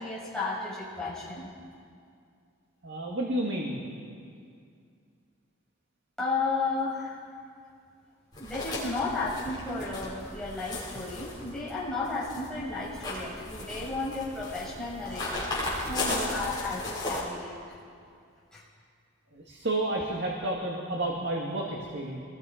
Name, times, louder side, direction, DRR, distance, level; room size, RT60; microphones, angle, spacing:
voice 1, 0.0-1.5 6.2-7.3 8.4-15.4 15.9-17.6 18.5-18.6, left 3 dB, 5° left, -7 dB, 6.0 m, -33 dB
voice 2, 2.8-3.8 19.3-22.2, right 1 dB, 55° right, -1 dB, 2.1 m, -31 dB
sound 1, 8.3-17.2, left 2 dB, 20° left, 6.2 m, -36 dB
27.0 x 21.0 x 5.1 m, 2.3 s
head